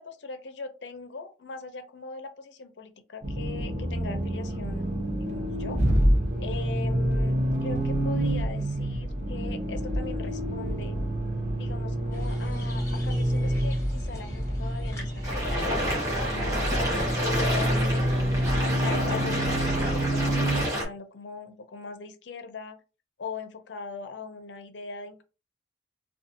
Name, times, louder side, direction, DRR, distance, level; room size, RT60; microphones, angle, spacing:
voice 1, 0.0-5.8 6.4-11.0 11.5-16.0 16.3-16.5 17.2-18.2 18.8-22.8 23.2-25.2, left 4 dB, 85° left, 8 dB, 0.6 m, -40 dB
Accelerating revving vroom, 3.2-20.7, right 1 dB, 40° right, 0.6 m, -27 dB
sound 1, 12.1-20.7, left 1 dB, 15° left, 1.0 m, -44 dB
sound 2, 15.2-20.8, equal, 20° right, 0.9 m, -29 dB
2.7 x 2.3 x 2.5 m, 0.31 s
head